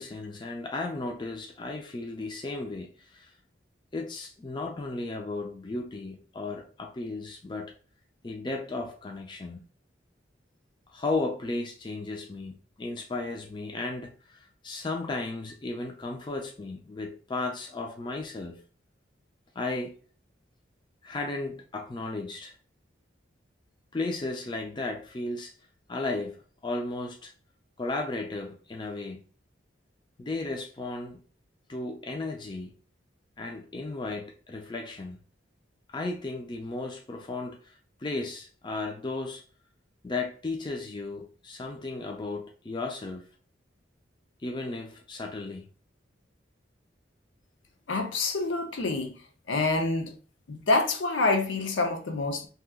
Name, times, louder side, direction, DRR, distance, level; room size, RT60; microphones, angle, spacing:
voice 1, 0.0-3.3 3.9-7.7 8.2-9.6 10.9-18.6 19.6-19.9 21.0-22.5 23.9-25.5 25.9-26.4 26.6-27.3 27.8-29.2 30.2-31.2 31.7-32.7 33.4-35.2 35.9-37.7 38.0-39.4 40.0-43.3 44.4-45.7, left 2 dB, 25° left, 0.4 m, -35 dB
voice 2, 47.9-49.2 49.5-50.1 50.5-52.5, left 3 dB, 75° left, 0.6 m, -27 dB
2.8 x 2.3 x 3.5 m
head